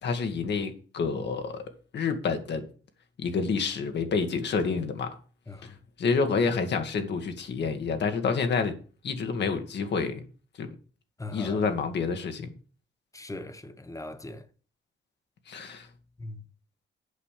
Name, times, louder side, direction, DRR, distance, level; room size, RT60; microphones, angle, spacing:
voice 1, 0.0-1.6 1.9-2.7 3.2-5.1 6.0-8.7 9.0-10.2 10.6-10.7 11.3-12.5 15.5-15.9, left 5 dB, 60° left, 1.8 m, -28 dB
voice 2, 11.2-11.6 13.1-14.4 16.2-16.4, left 2 dB, 15° left, 1.1 m, -40 dB
8.3 x 5.4 x 7.3 m
cardioid pair, 90°, 20 cm